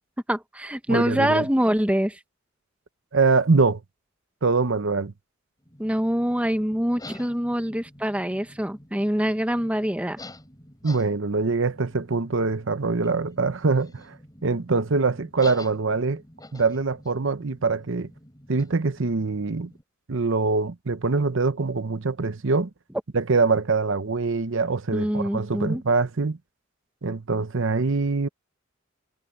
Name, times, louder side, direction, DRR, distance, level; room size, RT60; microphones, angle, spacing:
voice 1, 0.3-2.2 5.8-10.2 24.9-25.8, equal, 5° right, 1.1 m, -25 dB
voice 2, 0.9-1.4 3.1-3.8 4.4-5.1 10.8-14.2 14.4-16.2 16.5-18.1 18.5-19.7 20.1-22.7 23.1-26.4 27.0-28.3, right 4 dB, 65° right, 0.9 m, -24 dB
sound 1, 5.6-19.8, left 2 dB, 20° left, 5.0 m, -48 dB
head